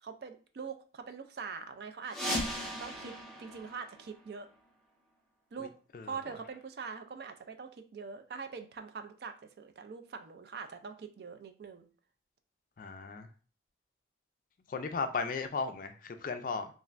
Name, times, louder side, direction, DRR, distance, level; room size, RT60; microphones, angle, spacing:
voice 1, 0.0-2.5 2.8-3.1 3.4-4.5 5.5-5.7 6.0-11.9, right 5 dB, 60° right, 7 dB, 0.3 m, -43 dB
sound 1, 2.1-4.7, equal, ahead, 0.6 m, -38 dB
voice 2, 12.8-13.3 14.7-16.7, left 4 dB, 45° left, 7 dB, 0.3 m, -35 dB
3.1 x 2.4 x 2.4 m, 0.39 s
head